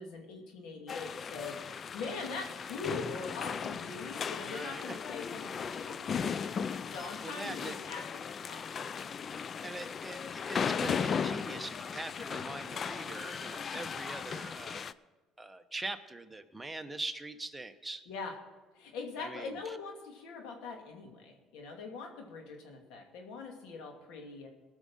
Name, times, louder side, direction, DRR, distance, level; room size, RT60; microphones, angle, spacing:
voice 1, 0.0-8.9 12.9-13.2 18.1-18.3 18.7-24.5, left 4 dB, 80° left, 2 dB, 2.5 m, -43 dB
sound 1, 0.9-14.9, left 6 dB, 40° left, 0.4 m, -37 dB
voice 2, 4.4-5.0 6.8-6.9 7.2-7.7 9.6-14.9 15.4-18.0 19.2-19.7, right 2 dB, 15° right, 7 dB, 1.0 m, -42 dB
19.0 x 6.3 x 5.6 m, 1.3 s
supercardioid pair, 90°, 0 cm